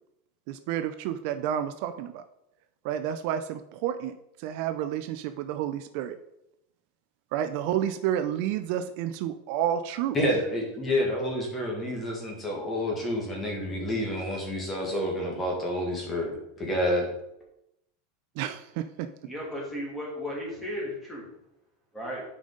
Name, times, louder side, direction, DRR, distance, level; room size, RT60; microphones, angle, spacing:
voice 1, 0.5-2.2 2.8-4.1 4.4-6.2 7.3-10.2 18.4-18.8, right 10 dB, 55° right, 9 dB, 0.4 m, -30 dB
voice 2, 10.1-17.1, left 1 dB, 20° left, 0 dB, 1.8 m, -29 dB
voice 3, 19.3-21.2 21.9-22.2, equal, ahead, -5 dB, 2.8 m, -35 dB
9.0 x 5.1 x 3.9 m, 0.83 s
supercardioid pair, 155°, 0 cm